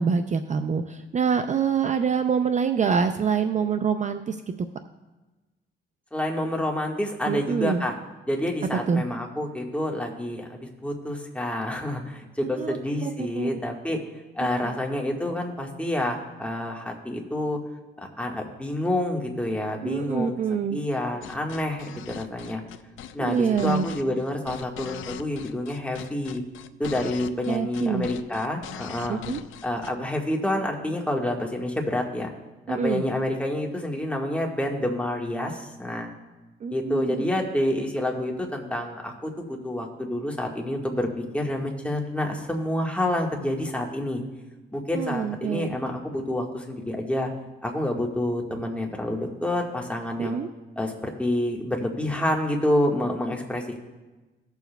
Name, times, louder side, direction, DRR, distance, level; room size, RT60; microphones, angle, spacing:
voice 1, 0.0-4.4 7.3-7.9 8.9-9.0 12.5-12.8 13.0-13.5 14.6-14.8 19.8-20.8 23.2-23.9 27.5-28.1 29.1-29.4 32.7-33.0 36.6-37.2 44.9-45.7 50.2-50.5, right 6 dB, 35° right, 8 dB, 0.5 m, -25 dB
voice 2, 6.1-7.9 8.3-14.0 14.3-17.6 18.2-20.3 20.7-22.6 23.1-26.4 26.8-29.2 29.6-32.3 32.7-36.1 36.7-44.2 44.7-47.3 47.6-50.4 50.8-53.8, left 1 dB, 5° left, 0 dB, 1.5 m, -28 dB
sound 1, 21.2-29.9, left 10 dB, 80° left, 0.5 m, -41 dB
19.0 x 7.0 x 2.3 m, 1.2 s
cardioid pair, 90°, 20 cm